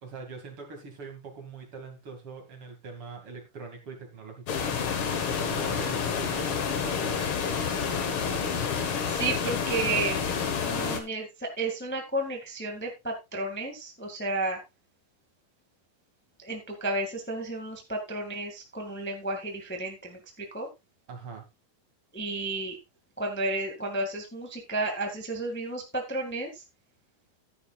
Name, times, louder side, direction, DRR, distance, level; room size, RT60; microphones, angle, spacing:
voice 1, 0.0-4.7 5.2-7.3 21.1-21.5, right 5 dB, 40° right, 2.8 m, -42 dB
sound 1, 4.5-11.0, left 6 dB, 60° left, 1.4 m, -29 dB
voice 2, 8.8-10.3 10.6-14.6 16.4-20.7 22.1-22.8 23.2-26.6, right 2 dB, 15° left, 0.4 m, -32 dB
13.0 x 10.0 x 2.4 m
omnidirectional pair, 4.2 m